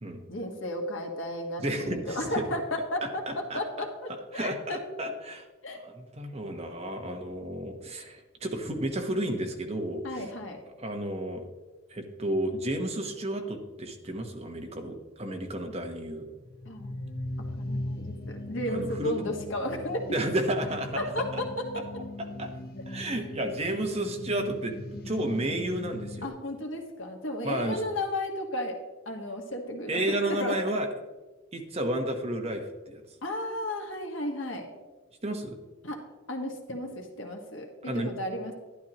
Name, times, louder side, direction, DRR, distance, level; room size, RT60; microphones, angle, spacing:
voice 1, 0.3-3.2 3.5-4.8 5.6-5.8 10.0-10.6 16.6-17.0 17.4-20.0 21.0-21.7 23.1-23.2 26.2-28.8 29.0-30.1 30.4-30.6 33.2-34.7 35.8-36.0 36.3-38.5, left 1 dB, 75° left, 2 dB, 1.5 m, -34 dB
voice 2, 1.6-2.4 3.3-3.6 4.3-5.5 5.7-10.3 10.8-11.5 11.9-16.3 18.7-19.1 20.1-21.0 22.4-22.5 22.9-26.3 27.4-27.8 29.9-30.9 31.5-33.0 35.2-35.6 37.9-38.1, right 1 dB, 30° right, 4 dB, 1.0 m, -32 dB
sound 1, 16.4-26.3, left 1 dB, 50° left, 0.8 m, -39 dB
11.5 x 11.0 x 3.0 m, 1.2 s
head